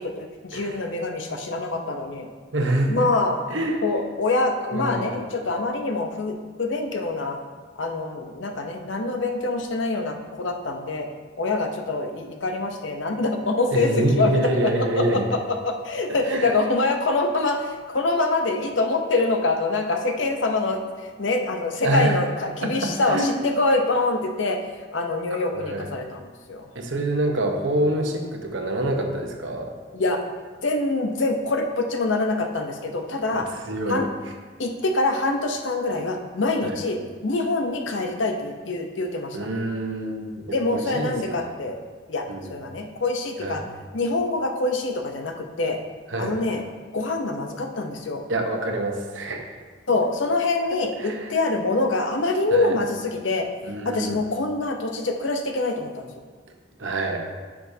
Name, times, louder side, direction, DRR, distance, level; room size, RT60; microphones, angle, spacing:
voice 1, 0.0-2.3 2.9-3.4 3.8-7.4 7.8-11.1 11.4-13.9 14.2-15.4 15.6-24.6 24.9-26.6 29.9-30.2 30.6-33.5 33.9-34.1 34.6-39.5 40.5-41.8 42.1-42.2 42.5-43.6 43.9-45.8 46.2-46.6 46.9-48.2 49.9-53.5 53.8-56.1, left 2 dB, 70° left, 4 dB, 0.8 m, -25 dB
voice 2, 0.5-0.8 2.5-3.1 3.5-3.8 4.7-5.2 13.7-15.3 16.3-16.5 21.8-22.2 22.6-23.4 25.3-25.9 26.7-29.7 33.3-34.0 36.6-36.8 39.3-41.5 42.3-42.5 43.4-43.6 46.1-46.4 48.3-49.4 50.7-51.4 52.5-52.8 53.7-54.2 56.8-57.2, right 1 dB, 70° right, 3 dB, 1.0 m, -26 dB
9.6 x 6.0 x 2.7 m, 1.5 s
head